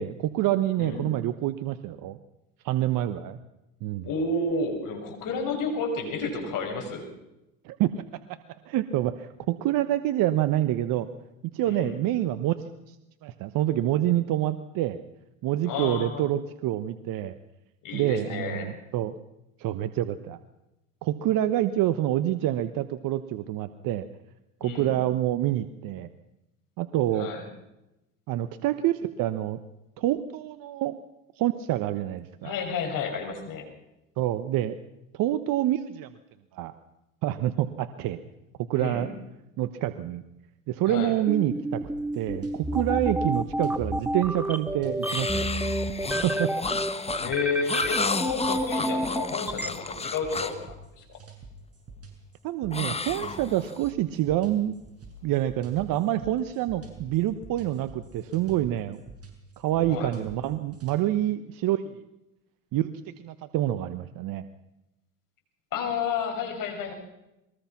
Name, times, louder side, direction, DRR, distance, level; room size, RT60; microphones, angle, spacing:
voice 1, 0.0-2.2 2.6-3.4 3.8-4.1 7.6-8.0 8.7-11.1 11.4-12.9 13.2-15.0 15.4-17.4 17.9-19.2 19.6-20.4 21.0-24.1 24.6-26.1 26.8-27.3 28.3-29.6 30.0-31.0 31.4-32.5 34.2-34.8 35.1-36.1 36.5-36.7 37.2-38.2 38.7-39.1 39.6-40.2 40.7-41.8 42.1-45.6 46.2-46.5 52.4-54.7 55.2-59.0 59.6-62.0 62.7-64.5, right 13 dB, 55° right, 12 dB, 1.2 m, -27 dB
voice 2, 4.0-7.1 11.6-12.0 15.7-16.2 17.8-18.7 24.6-25.0 27.1-27.4 32.4-33.7 38.7-39.1 40.9-41.1 47.2-51.0 59.9-60.1 65.7-66.9, left 4 dB, 55° left, 4 dB, 6.5 m, -31 dB
sound 1, 41.3-49.7, right 1 dB, 5° right, 1.9 m, -29 dB
sound 2, 41.8-61.0, right 2 dB, 35° right, 7.3 m, -47 dB
sound 3, 45.0-50.7 52.7-53.9, left 4 dB, 15° left, 1.6 m, -32 dB
22.5 x 20.0 x 5.9 m, 0.92 s
hypercardioid pair, 85°, 39 cm